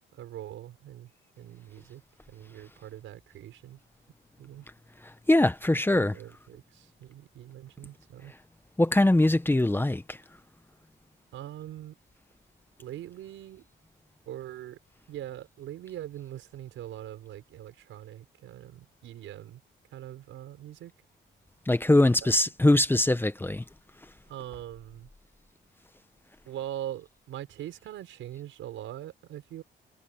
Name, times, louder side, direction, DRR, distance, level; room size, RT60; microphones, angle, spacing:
voice 1, 0.1-1.1 1.4-2.0 2.3-3.8 4.4-4.7 5.9-8.3 11.3-12.0 12.8-13.7 14.3-14.8 15.1-19.6 19.9-20.9 22.2-22.3 24.3-25.1 26.5-29.6, right 12 dB, 80° right, 5.8 m, -42 dB
voice 2, 5.0-6.1 8.8-10.2 21.7-23.6, left 1 dB, 10° left, 1.2 m, -22 dB
cardioid pair, 90°, 20 cm